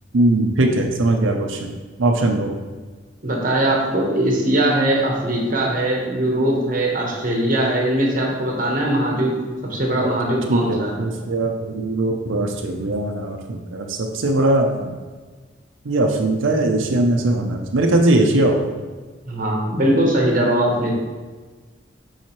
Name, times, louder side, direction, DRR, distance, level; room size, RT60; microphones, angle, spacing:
voice 1, 0.1-1.7 2.0-2.5 10.0-10.1 10.5-14.9 15.8-18.6, right 2 dB, 90° right, 2 dB, 0.6 m, -20 dB
voice 2, 3.2-9.3 9.6-11.1 19.3-20.9, right 1 dB, 45° right, -1 dB, 1.1 m, -20 dB
7.2 x 4.8 x 3.1 m, 1.4 s
head